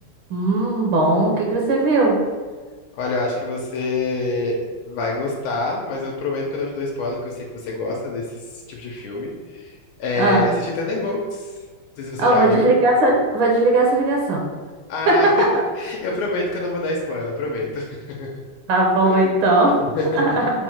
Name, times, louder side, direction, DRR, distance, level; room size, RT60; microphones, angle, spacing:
voice 1, 0.3-2.2 10.2-10.5 12.2-14.4 15.1-15.6 18.7-19.9 20.1-20.5, right 2 dB, 75° right, -1 dB, 1.4 m, -18 dB
voice 2, 2.9-4.6 4.9-11.5 12.0-12.7 14.9-15.3 15.8-18.3 19.0-19.3 19.8-20.2, left 2 dB, 85° left, -1 dB, 1.4 m, -26 dB
4.3 x 2.1 x 4.5 m, 1.4 s
omnidirectional pair, 2.3 m